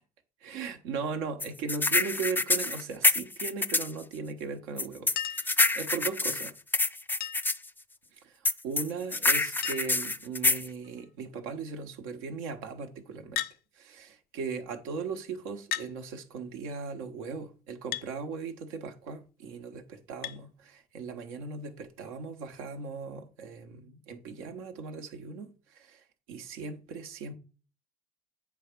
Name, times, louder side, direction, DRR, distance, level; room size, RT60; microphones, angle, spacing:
voice 1, 0.4-6.5 8.2-13.4 13.7-19.8 20.1-27.3, right 5 dB, 80° right, 1.1 m, -38 dB
sound 1, 1.4-3.9 4.8-7.6 8.5-10.7, left 2 dB, 10° left, 0.5 m, -26 dB
Chink clink, 5.2-5.6 7.2-7.6 9.0-9.1 9.3-9.4 9.6-10.1 10.8-11.2 13.3-13.6 14.7-14.8 15.7-15.9 17.9-18.1 20.2-20.4 21.8-21.9, left 11 dB, 60° left, 0.5 m, -35 dB
8.5 x 3.5 x 5.2 m
hypercardioid pair, 65°, 18 cm